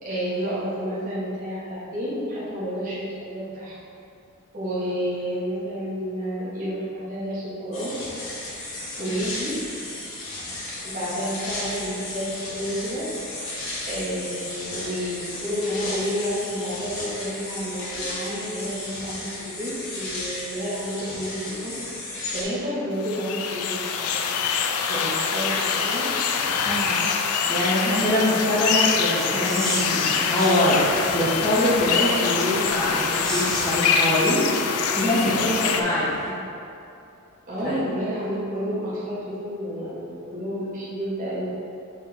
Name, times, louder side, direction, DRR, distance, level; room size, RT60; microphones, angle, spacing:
voice 1, 0.0-3.7 4.5-8.0 9.0-9.6 10.8-13.0 13.8-21.7 22.3-24.3 24.9-26.1 26.4-26.5 35.3-36.3 37.5-41.5, equal, 35° right, -10 dB, 1.4 m, -30 dB
sound 1, 7.7-22.4, left 2 dB, 65° left, 1.5 m, -34 dB
sound 2, 23.0-35.8, left 6 dB, 85° left, 0.4 m, -24 dB
voice 2, 26.6-30.8 31.1-34.4 34.9-36.1 37.6-37.8, left 1 dB, 20° left, -14 dB, 1.5 m, -24 dB
sound 3, 28.8-36.3, equal, ahead, 0.8 m, -37 dB
6.5 x 3.7 x 4.2 m, 2.6 s
head